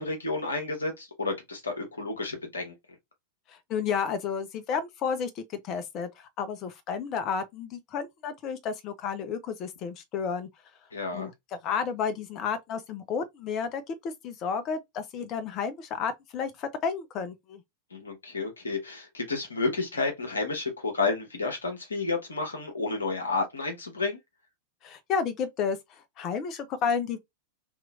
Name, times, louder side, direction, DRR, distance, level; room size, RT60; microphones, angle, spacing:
voice 1, 0.0-2.7 10.9-11.3 17.9-24.2, left 3 dB, 75° left, 1.0 m, -31 dB
voice 2, 3.7-6.1 6.4-10.5 11.1-11.3 11.6-17.6 24.8-25.8 26.2-27.2, left 6 dB, 35° left, 0.6 m, -31 dB
3.0 x 2.9 x 2.4 m
figure-of-eight pair, 90°, 0 cm